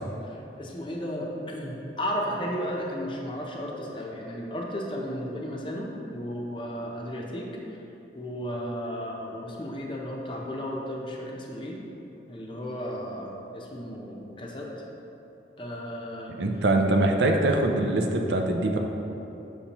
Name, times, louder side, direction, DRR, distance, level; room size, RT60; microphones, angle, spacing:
voice 1, 0.2-7.5 8.1-11.8 12.3-14.7 15.6-16.3, equal, 30° left, -1 dB, 0.7 m, -34 dB
voice 2, 16.4-18.8, right 2 dB, 80° right, 3 dB, 0.6 m, -23 dB
6.8 x 6.0 x 3.0 m, 3.0 s
head